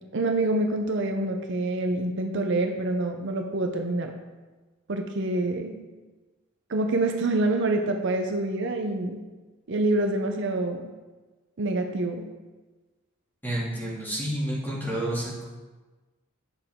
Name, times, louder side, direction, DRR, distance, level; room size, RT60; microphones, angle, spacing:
voice 1, 0.1-4.1 4.9-5.8 6.7-9.2 9.7-10.8 11.6-12.2, right 2 dB, 60° right, 4 dB, 0.7 m, -26 dB
voice 2, 13.4-15.4, right 1 dB, 10° left, -7 dB, 2.6 m, -30 dB
9.7 x 6.9 x 3.7 m, 1.3 s
head